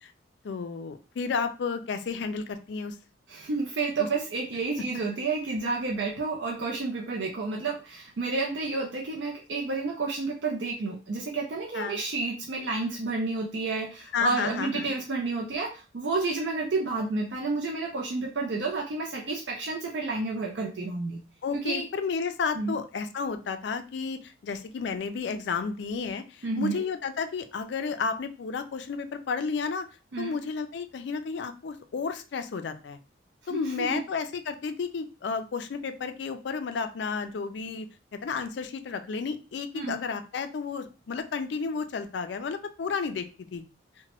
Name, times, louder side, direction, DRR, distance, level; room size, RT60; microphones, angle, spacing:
voice 1, 0.4-3.0 11.7-12.0 14.1-14.9 21.4-29.9 30.2-33.0 33.5-37.9 38.2-43.3 43.5-43.6, left 5 dB, 60° left, 9 dB, 0.4 m, -32 dB
voice 2, 3.3-21.2 21.6-21.9 22.6-22.8 26.4-26.9 30.1-30.4 33.5-34.0 39.7-40.0, right 3 dB, 65° right, 0 dB, 0.5 m, -30 dB
2.9 x 2.1 x 2.9 m, 0.33 s
head